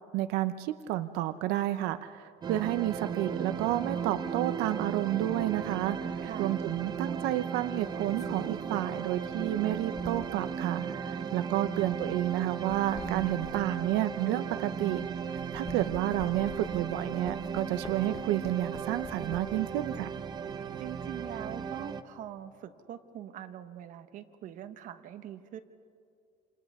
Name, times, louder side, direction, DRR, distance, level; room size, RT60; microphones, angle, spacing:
voice 1, 0.1-20.1, right 14 dB, 85° right, 11 dB, 0.7 m, -31 dB
sound 1, 2.4-22.0, right 6 dB, 25° right, 0.7 m, -36 dB
sound 2, 6.2-6.4 7.7-10.5 11.2-11.4 12.5-15.0 15.4-19.7 20.1-20.9, left 4 dB, 20° left, 0.9 m, -48 dB
voice 2, 6.2-6.5 20.8-25.6, right 10 dB, 50° right, 9 dB, 1.1 m, -43 dB
28.5 x 28.5 x 3.6 m, 2.3 s
cardioid pair, 160°, 17 cm